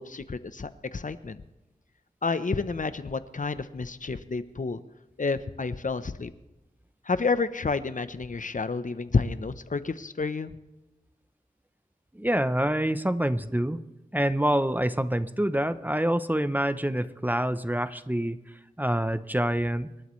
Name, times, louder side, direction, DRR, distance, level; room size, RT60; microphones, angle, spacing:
voice 1, 0.0-1.4 2.2-4.8 5.2-6.3 7.0-10.5, left 4 dB, 55° left, 13 dB, 0.8 m, -30 dB
voice 2, 12.1-13.8 14.1-19.9, right 1 dB, 10° right, 12 dB, 0.7 m, -26 dB
26.0 x 12.5 x 3.2 m, 1.0 s
wide cardioid pair, 65°, 16 cm